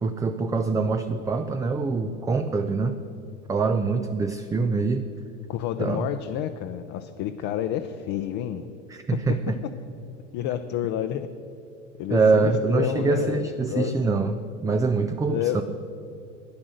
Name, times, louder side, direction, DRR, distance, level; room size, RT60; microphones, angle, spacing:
voice 1, 0.0-3.0 3.5-5.0 5.8-6.1 8.9-9.6 12.1-15.6, right 4 dB, 10° right, 7 dB, 0.4 m, -24 dB
voice 2, 5.5-8.7 10.3-11.3 12.0-13.9 15.3-15.6, left 11 dB, 50° left, 7 dB, 0.7 m, -29 dB
11.5 x 9.8 x 6.4 m, 2.7 s
hypercardioid pair, 100°, 37 cm